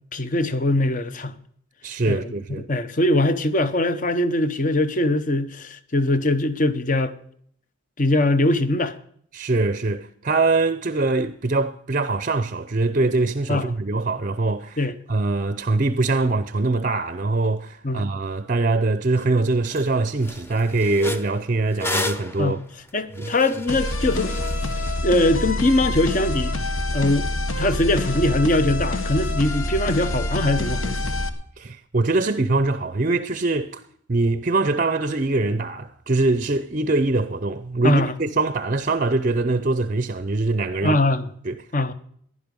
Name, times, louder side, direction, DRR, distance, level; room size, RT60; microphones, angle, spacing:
voice 1, 0.1-1.3 2.1-2.3 2.6-7.1 8.0-9.0 13.5-13.7 14.8-15.0 17.8-18.0 22.4-22.6 22.9-24.4 25.0-26.5 26.9-27.3 27.6-31.1 37.8-38.1 40.8-41.3 41.7-41.9, left 1 dB, 35° left, 0.8 m, -21 dB
voice 2, 1.8-2.7 9.3-22.6 23.2-23.3 31.6-33.8 34.1-41.0 41.4-41.6, right 3 dB, 40° right, 0.6 m, -23 dB
sound 1, 19.2-19.3 19.6-19.9 20.2-25.0, left 1 dB, 10° left, 0.6 m, -32 dB
sound 2, 23.7-31.3, left 1 dB, 75° left, 1.5 m, -26 dB
15.5 x 11.0 x 5.3 m
head